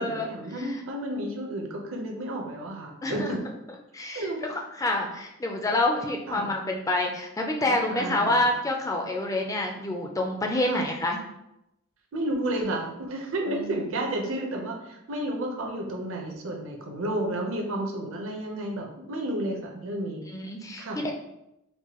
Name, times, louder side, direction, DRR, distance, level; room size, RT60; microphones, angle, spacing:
voice 1, 0.0-3.4 4.1-4.6 6.3-6.5 7.7-8.5 10.6-10.8 12.1-20.3 20.8-21.0, right 1 dB, 70° right, 1 dB, 0.7 m, -32 dB
voice 2, 3.0-3.4 3.9-11.2 13.5-13.7 20.3-21.1, left 2 dB, 15° left, 2 dB, 0.4 m, -27 dB
4.6 x 2.2 x 2.9 m, 0.87 s
head